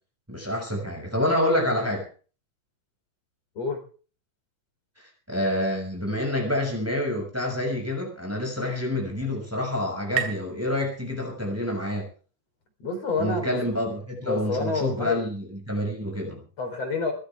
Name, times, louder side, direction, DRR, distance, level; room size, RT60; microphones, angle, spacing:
voice 1, 0.3-2.0 5.3-12.1 13.2-16.4, left 1 dB, 5° right, 1 dB, 6.3 m, -27 dB
sound 1, 8.7-12.1, right 10 dB, 50° right, 3.8 m, -37 dB
voice 2, 12.8-13.6 14.2-15.2 16.6-17.1, left 3 dB, 45° left, 3 dB, 5.1 m, -28 dB
23.0 x 15.5 x 3.6 m, 0.39 s
omnidirectional pair, 3.9 m